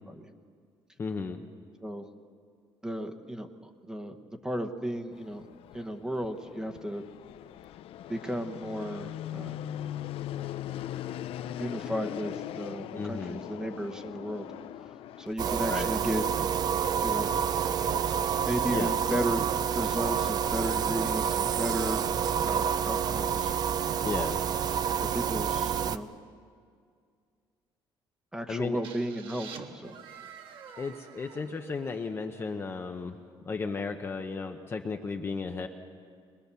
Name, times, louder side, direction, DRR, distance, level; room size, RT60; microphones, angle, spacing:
voice 1, 1.0-1.4 13.0-13.4 15.7-15.9 18.7-19.0 24.0-24.4 28.5-28.8 30.8-33.2 33.5-35.7, left 4 dB, 25° left, 5 dB, 0.8 m, -34 dB
voice 2, 2.8-4.2 4.4-5.5 5.7-7.0 8.1-9.6 11.6-14.5 15.2-16.2 17.0-17.3 18.5-19.4 19.7-22.1 22.4-23.5 25.0-26.1 28.3-30.0, equal, 5° right, 5 dB, 1.1 m, -34 dB
Fixed-wing aircraft airplane, 5.1-15.3, left 12 dB, 75° left, 0.5 m, -40 dB
sound 1, 15.4-26.0, right 8 dB, 45° right, 0.6 m, -28 dB
sound 2, 28.8-32.6, right 7 dB, 60° right, 1.6 m, -48 dB
22.0 x 22.0 x 6.9 m, 2.1 s
cardioid pair, 175°, 10 cm